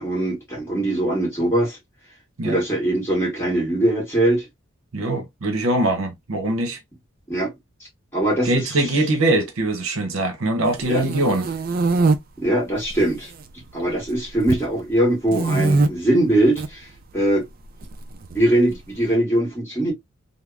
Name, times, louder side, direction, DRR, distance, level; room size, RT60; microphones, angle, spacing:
voice 1, 0.0-1.8 2.4-4.5 7.3-7.5 8.1-8.6 10.9-11.0 12.4-13.3 13.7-16.9 17.1-17.4 18.3-19.9, right 1 dB, 10° left, 1.5 m, -21 dB
voice 2, 4.9-6.8 8.4-11.5, right 1 dB, 65° right, 0.7 m, -22 dB
sound 1, 10.8-12.2 12.8-13.4 13.7-14.7 15.3-15.9 16.4-16.7 17.8-18.7, right 3 dB, 40° right, 0.3 m, -22 dB
3.3 x 2.0 x 2.3 m
head